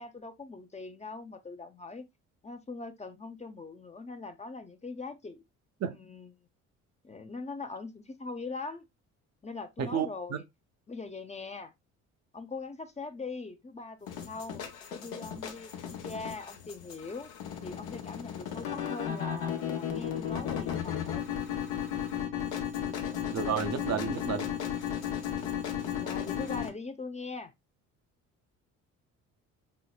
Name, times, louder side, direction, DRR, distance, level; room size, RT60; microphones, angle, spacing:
voice 1, 0.0-2.1 2.4-5.4 5.9-6.5 7.0-8.8 9.4-10.4 10.9-11.7 12.3-14.6 14.9-17.3 17.6-21.3 26.0-27.5, left 3 dB, 20° left, 0.6 m, -41 dB
voice 2, 9.8-10.4 23.3-24.5, right 8 dB, 45° right, 0.6 m, -31 dB
sound 1, 14.1-26.7, left 9 dB, 75° left, 1.0 m, -35 dB
5.6 x 2.0 x 2.2 m
hypercardioid pair, 60°, 35 cm